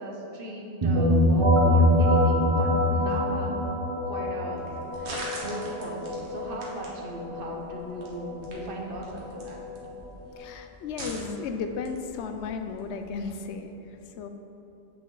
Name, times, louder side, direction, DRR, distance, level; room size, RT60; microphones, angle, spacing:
voice 1, 0.0-3.6 4.0-9.6, right 1 dB, 55° right, -1 dB, 1.2 m, -38 dB
sound 1, 0.8-10.4, left 1 dB, 30° right, 1.1 m, -25 dB
sound 2, 4.5-13.3, right 1 dB, 80° right, 1.6 m, -44 dB
voice 2, 10.4-13.7 14.2-14.3, left 5 dB, 85° left, 7 dB, 0.9 m, -34 dB
8.0 x 5.9 x 3.9 m, 2.8 s
omnidirectional pair, 1.1 m